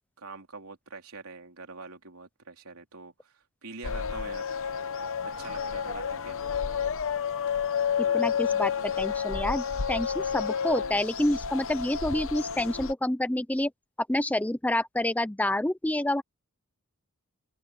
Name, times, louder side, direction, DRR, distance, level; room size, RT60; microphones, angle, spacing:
voice 1, 0.2-4.5 5.4-6.4, right 4 dB, 70° right, 3.8 m, -45 dB
sound 1, 3.8-12.9, left 7 dB, 65° left, 0.9 m, -30 dB
voice 2, 8.1-13.7 14.1-16.2, left 1 dB, 5° left, 0.6 m, -28 dB
open air
head